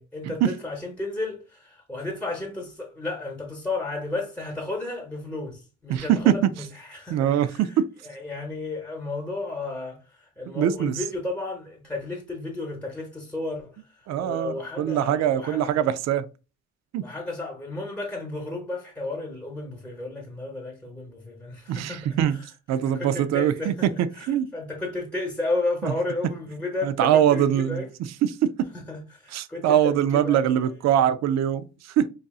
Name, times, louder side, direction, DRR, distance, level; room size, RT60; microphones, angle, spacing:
voice 1, 0.0-7.8 8.0-15.7 17.0-22.5 22.7-27.9 28.9-30.4, left 2 dB, 5° left, 1.0 m, -33 dB
voice 2, 5.9-6.4 7.1-7.9 10.5-11.0 14.1-16.3 16.9-17.0 21.7-22.4 22.7-24.5 25.8-25.9 26.8-27.8 28.2-28.5 29.3-32.1, right 10 dB, 60° right, 0.4 m, -23 dB
4.9 x 2.7 x 2.3 m
cardioid pair, 90°, 30 cm